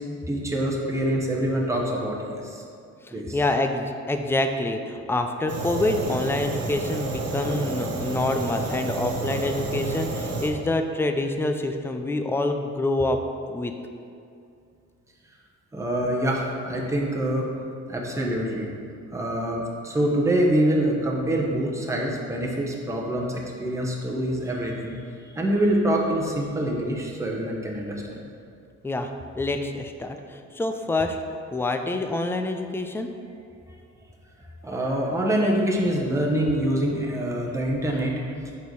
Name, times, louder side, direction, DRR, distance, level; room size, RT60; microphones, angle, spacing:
voice 1, 0.3-2.6 3.1-3.3 15.7-17.5 17.9-18.7 19.1-25.0 25.3-28.2 34.6-38.4, right 1 dB, 10° right, -2 dB, 0.9 m, -25 dB
voice 2, 3.0-13.2 13.5-13.7 28.8-29.1 29.4-31.2 31.5-33.1, left 2 dB, 10° left, 6 dB, 0.4 m, -26 dB
Fire, 5.5-10.5, right 3 dB, 55° right, 0.9 m, -30 dB
5.2 x 4.3 x 4.7 m, 2.4 s
cardioid pair, 90°, 30 cm